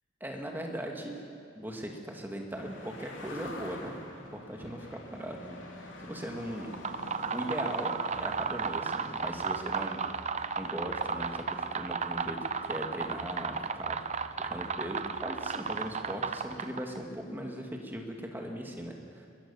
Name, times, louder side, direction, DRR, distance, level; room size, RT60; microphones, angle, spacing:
voice 1, 0.2-1.2 1.5-4.0 4.3-6.8 7.3-10.0 10.6-12.4 12.7-14.0 14.4-19.3, equal, 10° right, 1 dB, 2.4 m, -39 dB
sound 1, 2.6-16.9, left 2 dB, 70° left, 3.3 m, -49 dB
sound 2, 6.6-17.0, right 5 dB, 35° right, 0.7 m, -34 dB
sound 3, 8.1-16.2, equal, 90° right, 4.6 m, -56 dB
22.0 x 20.5 x 7.3 m, 2.3 s
head